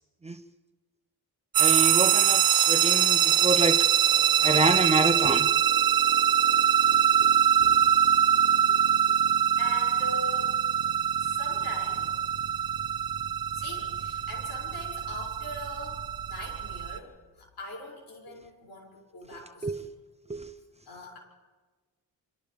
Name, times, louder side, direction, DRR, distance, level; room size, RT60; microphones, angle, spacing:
sound 1, 1.5-17.0, right 9 dB, 65° right, 1.2 m, -23 dB
voice 1, 1.6-3.9 4.4-5.6 7.2-7.3 7.6-7.8 8.7-8.8 19.6-19.8 20.3-20.5, right 2 dB, 15° right, 0.9 m, -27 dB
voice 2, 9.6-12.1 13.5-19.9 20.9-21.2, left 2 dB, 80° left, 6.7 m, -42 dB
28.5 x 26.5 x 3.6 m
cardioid pair, 85°, 38 cm